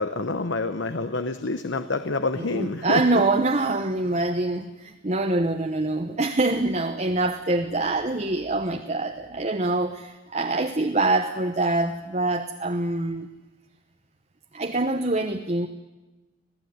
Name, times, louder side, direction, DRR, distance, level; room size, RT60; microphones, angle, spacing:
voice 1, 0.0-3.0, left 3 dB, 65° left, 10 dB, 1.0 m, -27 dB
voice 2, 2.4-13.3 14.5-15.7, right 2 dB, 35° right, 5 dB, 1.0 m, -25 dB
26.5 x 17.0 x 9.5 m, 1.2 s
head